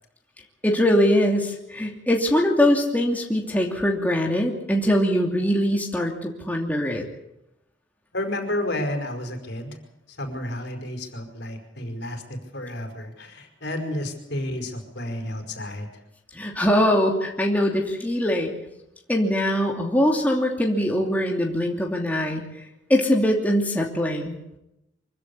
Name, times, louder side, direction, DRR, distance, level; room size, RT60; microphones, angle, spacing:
voice 1, 0.6-7.0 16.3-18.5 19.1-22.6 22.9-24.3, equal, 10° left, 0 dB, 2.7 m, -22 dB
voice 2, 8.1-9.8 10.2-15.9, left 1 dB, 65° left, 5 dB, 5.1 m, -31 dB
25.0 x 16.0 x 8.5 m, 0.85 s
head